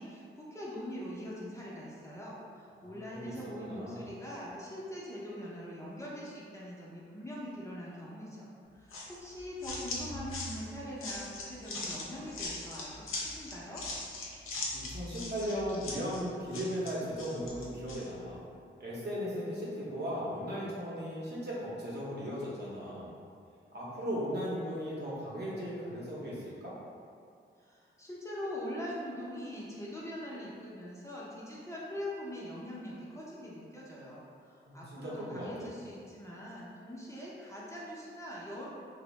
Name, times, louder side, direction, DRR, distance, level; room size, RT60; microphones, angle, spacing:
voice 1, 0.0-8.5 8.7-13.8 27.6-38.7, equal, 15° left, -7 dB, 0.5 m, -42 dB
voice 2, 2.8-4.1 14.7-18.4 18.8-23.1 23.7-26.7 34.6-35.7, equal, 55° right, -7 dB, 0.8 m, -37 dB
sound 1, 8.9-18.1, left 2 dB, 90° left, 0.5 m, -40 dB
2.5 x 2.0 x 3.0 m, 2.3 s
cardioid pair, 80°, 21 cm